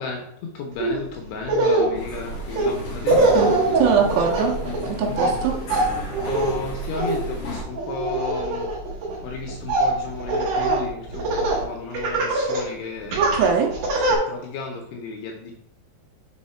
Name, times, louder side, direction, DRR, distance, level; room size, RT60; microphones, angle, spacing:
voice 1, 0.0-3.2 5.1-5.7 6.3-8.7 9.2-13.4 14.0-15.5, left 4 dB, 80° left, 1 dB, 2.5 m, -34 dB
Laughter, 0.8-1.0 1.4-11.6 11.9-12.7 13.1-14.2, right 2 dB, 60° right, 2.3 m, -23 dB
sound 1, 1.9-7.6, equal, 55° left, 1.7 m, -33 dB
voice 2, 3.4-4.6 4.8-5.6 13.2-13.7, right 6 dB, 75° right, 1 dB, 2.7 m, -22 dB
6.5 x 3.6 x 4.3 m, 0.72 s
omnidirectional pair, 5.3 m